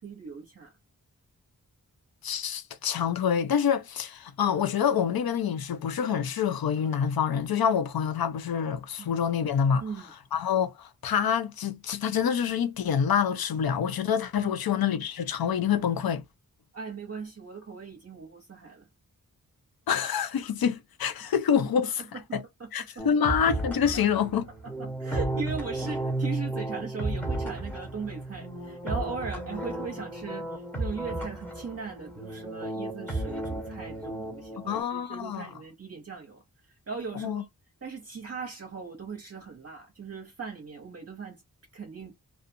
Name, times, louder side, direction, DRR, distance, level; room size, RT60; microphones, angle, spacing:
voice 1, 0.0-0.7 9.0-9.2 9.8-10.1 14.4-14.5 16.7-18.9 22.6-23.1 24.6-36.4 36.9-37.5 37.8-41.4 41.7-42.1, right 5 dB, 40° right, 0.8 m, -39 dB
voice 2, 2.2-9.8 10.3-16.2 19.9-22.0 22.3-22.4 22.7-24.5 34.6-35.5 37.1-37.4, left 8 dB, 80° left, 0.6 m, -26 dB
sound 1, 23.0-34.8, right 2 dB, 5° left, 1.1 m, -34 dB
2.5 x 2.4 x 2.6 m
wide cardioid pair, 60°, 35 cm